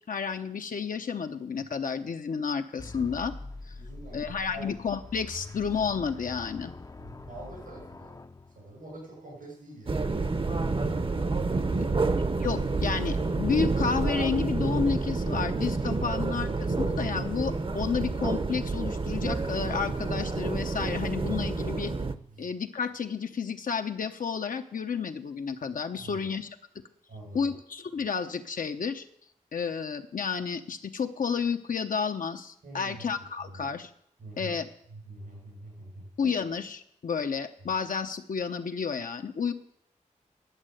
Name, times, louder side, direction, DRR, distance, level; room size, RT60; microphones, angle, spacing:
voice 1, 0.0-3.3 4.1-6.7 12.4-16.5 16.8-21.9 22.4-26.5 27.3-29.0 29.5-33.9 34.4-34.7 36.2-39.5, left 6 dB, 80° left, 7 dB, 0.8 m, -31 dB
sound 1, 2.8-9.0, left 3 dB, 25° left, 0.5 m, -44 dB
voice 2, 3.8-4.7 7.0-8.2 8.5-10.1 22.3-22.5 25.9-26.3 27.1-27.5 32.6-33.0 33.4-33.6 34.2-34.6 34.9-36.1, right 1 dB, 90° right, 0 dB, 6.7 m, -45 dB
sound 2, 9.9-22.1, right 3 dB, 40° right, 0.7 m, -29 dB
11.0 x 7.5 x 7.8 m, 0.71 s
cardioid pair, 50°, 14 cm